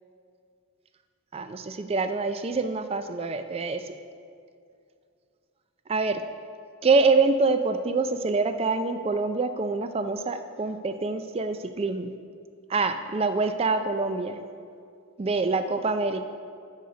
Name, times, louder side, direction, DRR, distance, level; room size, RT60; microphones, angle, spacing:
voice 1, 1.3-4.0 5.9-6.2 6.8-12.1 12.7-14.4 15.2-16.2, right 3 dB, 25° right, 9 dB, 0.3 m, -25 dB
6.6 x 6.4 x 6.7 m, 2.3 s
head